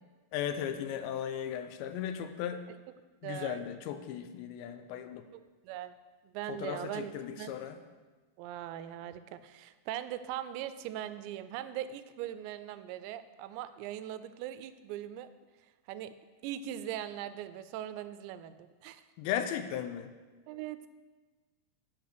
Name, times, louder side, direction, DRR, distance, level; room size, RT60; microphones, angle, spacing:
voice 1, 0.3-2.6 3.2-5.2 6.5-7.8 19.2-20.1, left 9 dB, 85° left, 9 dB, 2.9 m, -36 dB
voice 2, 3.2-3.7 5.3-6.0 6.3-7.5 8.4-15.3 15.9-16.1 16.4-19.0 20.5-20.9, right 11 dB, 85° right, 12 dB, 2.8 m, -40 dB
8.0 x 7.0 x 6.6 m, 1.3 s
omnidirectional pair, 5.1 m